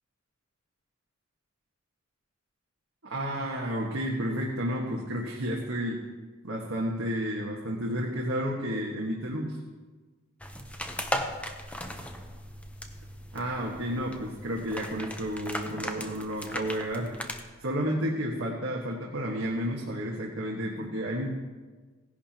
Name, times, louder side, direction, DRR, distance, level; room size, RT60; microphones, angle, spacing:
voice 1, 3.1-6.0 6.4-9.6 13.3-17.2 17.6-21.3, equal, 90° right, -3 dB, 1.5 m, -31 dB
sound 1, 10.4-17.4, left 1 dB, 5° left, 0.8 m, -37 dB
16.5 x 11.0 x 2.9 m, 1.3 s
head